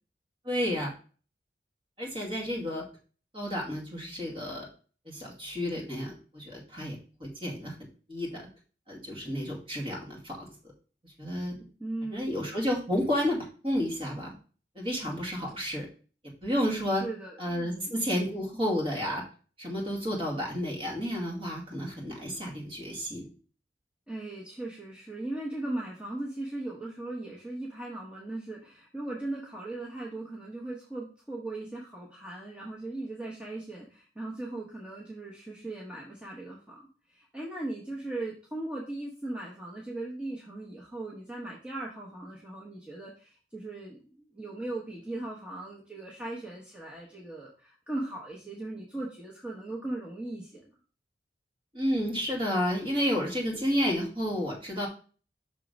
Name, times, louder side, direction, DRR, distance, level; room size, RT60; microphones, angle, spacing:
voice 1, 0.4-0.9 2.0-2.8 3.3-4.7 5.1-7.7 8.1-8.4 8.9-10.5 11.0-11.6 12.1-14.3 14.7-15.9 16.4-17.0 17.4-19.2 19.6-23.2 51.7-54.9, equal, 30° right, -2 dB, 2.1 m, -31 dB
voice 2, 11.8-12.5 16.9-18.1 24.1-36.8 37.1-50.7, right 2 dB, 5° right, -4 dB, 1.0 m, -38 dB
6.1 x 3.7 x 5.2 m, 0.38 s
head